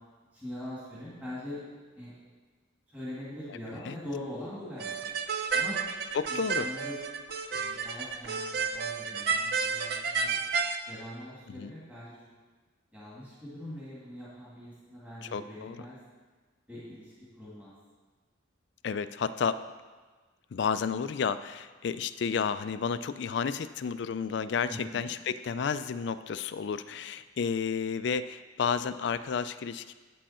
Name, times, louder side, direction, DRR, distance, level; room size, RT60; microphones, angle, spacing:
voice 1, 0.3-1.6 2.0-2.1 2.9-5.1 5.5-5.8 6.3-7.0 7.5-10.4 10.9-12.2 12.9-16.0 16.7-17.7 24.7-25.1, left 1 dB, 10° right, -9 dB, 2.2 m, -42 dB
sound 1, 4.8-10.8, right 5 dB, 50° right, 0.5 m, -31 dB
voice 2, 6.1-6.7 11.5-11.7 15.2-15.8 18.8-19.6 20.5-29.9, left 6 dB, 60° left, 13 dB, 0.3 m, -31 dB
8.6 x 7.6 x 4.3 m, 1.4 s
head